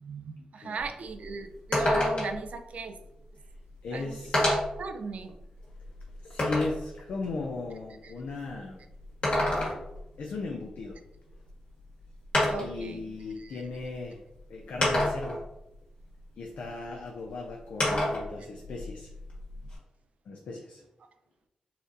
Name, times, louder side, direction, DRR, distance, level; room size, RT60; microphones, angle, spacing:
voice 1, 0.0-3.0 3.9-5.3 8.0-8.1 12.5-13.0 13.4-13.7, right 5 dB, 70° right, 7 dB, 0.3 m, -38 dB
sound 1, 0.8-0.9 1.2-1.3 1.7-2.5 3.5-3.6 4.3-4.8 5.4-6.8 9.0-10.0 11.5-11.6 12.3-12.8 13.8-13.9 14.8-15.4 17.8-18.3 18.6-19.7, left 1 dB, 60° left, 1.5 m, -27 dB
voice 2, 3.8-4.5 6.2-8.8 10.2-11.0 12.6-14.2 14.5-15.4 16.4-19.1 20.3-20.8, left 3 dB, 80° left, 1 dB, 0.4 m, -37 dB
4.1 x 2.5 x 2.6 m, 0.88 s
cardioid pair, 85°, 2 cm